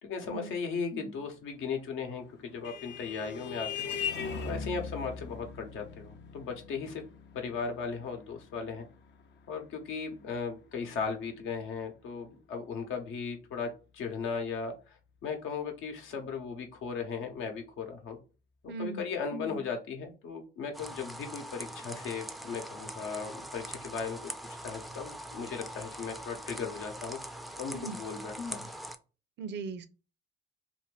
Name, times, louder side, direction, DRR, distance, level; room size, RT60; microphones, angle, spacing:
voice 1, 0.0-4.0 4.4-7.0 7.3-8.8 9.5-18.2 18.6-28.7, left 5 dB, 85° left, 4 dB, 0.8 m, -37 dB
Vehicle horn car horn honking, 2.0-11.0, left 6 dB, 65° left, 0.5 m, -40 dB
voice 2, 18.7-19.1 27.7-28.0 29.4-29.9, right 4 dB, 60° right, 12 dB, 0.5 m, -38 dB
sound 1, 20.7-29.0, right 1 dB, ahead, 0.3 m, -43 dB
2.6 x 2.5 x 3.2 m, 0.34 s
cardioid pair, 90°, 20 cm